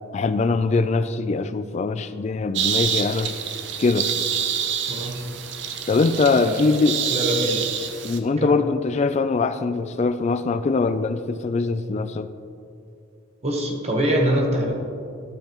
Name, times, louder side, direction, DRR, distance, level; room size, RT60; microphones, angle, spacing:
voice 1, 0.1-3.3 3.8-4.1 5.9-7.0 8.0-12.3, left 4 dB, 35° left, 0.3 m, -22 dB
sound 1, 2.5-8.2, right 8 dB, 65° right, 0.6 m, -27 dB
voice 2, 7.1-7.6 8.4-8.6 13.4-14.7, right 1 dB, 35° right, 1.0 m, -23 dB
12.0 x 6.7 x 3.0 m
head